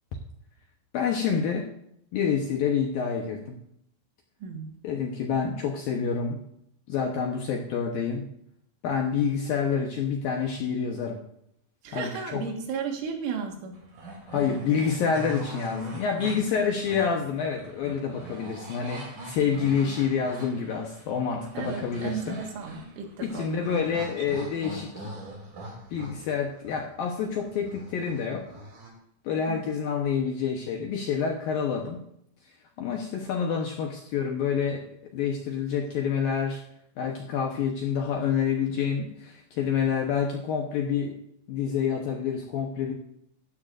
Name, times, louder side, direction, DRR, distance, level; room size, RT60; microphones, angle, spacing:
voice 1, 0.9-1.7 2.1-3.6 4.8-6.4 6.9-8.3 8.8-11.2 11.9-12.4 14.3-22.4 23.2-25.1 25.9-28.4 29.2-32.0 32.8-34.9 35.1-36.6 37.0-41.2 41.5-42.9, left 6 dB, 75° left, 1 dB, 2.3 m, -28 dB
voice 2, 4.4-4.7 11.8-13.8 21.5-24.1 29.5-29.7, right 6 dB, 80° right, 2 dB, 4.3 m, -34 dB
sound 1, 13.7-28.9, right 1 dB, 45° right, 4.2 m, -42 dB
16.5 x 13.5 x 2.7 m, 0.73 s
omnidirectional pair, 5.5 m